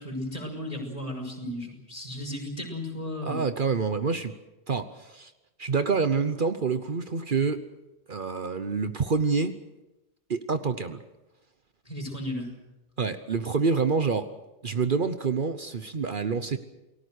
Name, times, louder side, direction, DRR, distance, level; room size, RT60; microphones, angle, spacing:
voice 1, 0.0-3.4 11.9-12.5, left 1 dB, 35° left, 1 dB, 6.1 m, -35 dB
voice 2, 3.2-4.3 4.7-5.3 5.6-7.7 8.1-9.6 10.3-11.0 13.0-14.3 14.6-16.6, right 5 dB, 55° right, 10 dB, 1.1 m, -27 dB
29.0 x 20.0 x 6.5 m, 1.0 s
omnidirectional pair, 1.1 m